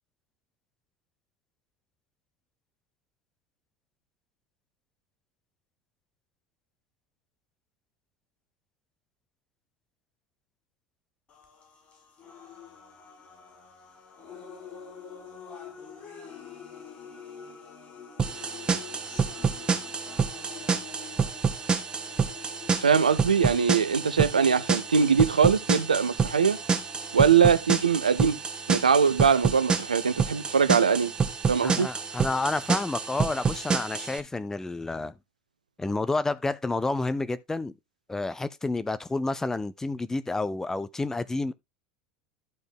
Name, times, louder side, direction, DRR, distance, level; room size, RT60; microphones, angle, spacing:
sound 1, 11.3-27.3, left 7 dB, 35° left, 4.9 m, -47 dB
sound 2, 18.2-34.2, right 5 dB, 20° right, 1.6 m, -28 dB
voice 1, 22.8-26.6 27.1-28.4 28.7-31.1 31.5-31.9, right 6 dB, 80° right, 0.7 m, -22 dB
voice 2, 31.6-35.1 35.8-37.7 38.1-41.5, left 3 dB, 10° left, 0.7 m, -29 dB
12.0 x 5.1 x 3.7 m
figure-of-eight pair, 75°, 4 cm